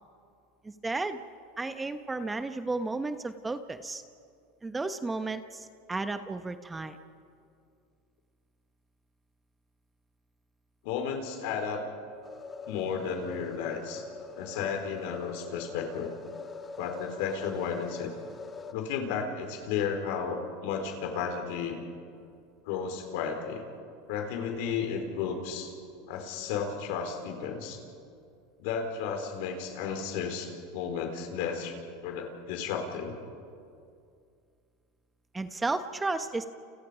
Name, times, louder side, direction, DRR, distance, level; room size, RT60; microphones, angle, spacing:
voice 1, 0.6-1.2 1.6-4.0 4.6-7.0 35.3-36.5, right 3 dB, 15° right, 10 dB, 1.1 m, -33 dB
voice 2, 10.8-11.8 12.7-14.1 14.4-16.1 16.8-18.1 18.7-21.8 22.6-23.6 24.1-25.7 26.1-27.8 28.6-31.7 32.0-33.2, left 6 dB, 70° left, 4 dB, 4.4 m, -33 dB
sound 1, 12.2-18.7, left 4 dB, 25° left, 1.5 m, -43 dB
30.0 x 29.5 x 5.2 m, 2.4 s
supercardioid pair, 115°, 0 cm